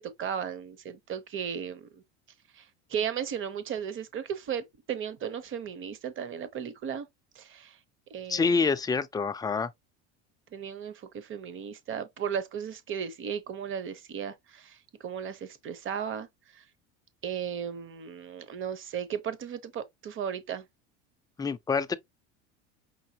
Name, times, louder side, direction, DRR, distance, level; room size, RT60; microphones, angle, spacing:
voice 1, 0.0-2.0 2.5-7.1 7.3-7.8 8.1-8.7 10.5-16.3 16.5-16.6 17.2-20.6, right 8 dB, 35° right, 0.9 m, -35 dB
voice 2, 8.3-9.7 21.4-21.9, left 5 dB, 10° left, 0.4 m, -27 dB
5.5 x 2.7 x 2.8 m
supercardioid pair, 100°, 35 cm